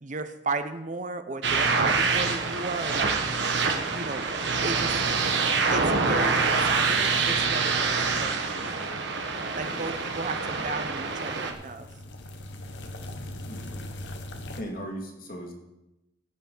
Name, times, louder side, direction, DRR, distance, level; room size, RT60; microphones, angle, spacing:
voice 1, 0.0-3.4 3.9-4.2 4.6-5.2 5.7-8.4 9.5-11.9, right 3 dB, 45° right, 9 dB, 0.7 m, -34 dB
sound 1, 1.4-11.5, right 4 dB, 65° right, 1.3 m, -26 dB
voice 2, 9.5-10.7 13.4-13.8 14.6-15.5, equal, 50° left, 1 dB, 2.1 m, -40 dB
sound 2, 10.7-14.6, left 1 dB, 70° left, 1.0 m, -40 dB
15.5 x 8.2 x 3.9 m, 0.91 s
head